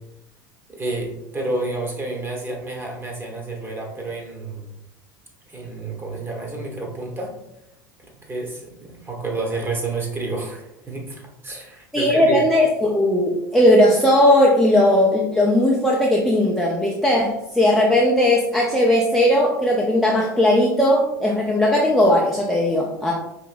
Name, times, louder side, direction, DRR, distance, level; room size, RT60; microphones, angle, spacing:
voice 1, 0.7-4.7 5.5-7.3 8.0-12.4, right 2 dB, 20° right, 0 dB, 1.2 m, -30 dB
voice 2, 11.9-23.1, left 1 dB, ahead, -3 dB, 0.6 m, -17 dB
4.8 x 2.8 x 2.5 m, 0.85 s
hypercardioid pair, 80°, 11 cm